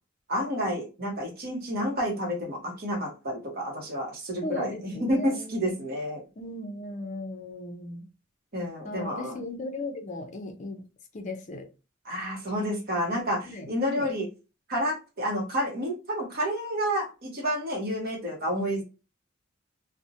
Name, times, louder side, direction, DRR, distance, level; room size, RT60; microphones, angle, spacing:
voice 1, 0.3-6.2 8.5-9.4 12.0-14.3 14.7-18.8, equal, 50° right, 1 dB, 0.8 m, -30 dB
voice 2, 4.4-5.9 6.4-8.1 8.8-10.8 11.1-11.7 13.4-14.1, left 2 dB, 40° left, 5 dB, 0.5 m, -37 dB
2.6 x 2.0 x 2.6 m, 0.31 s
head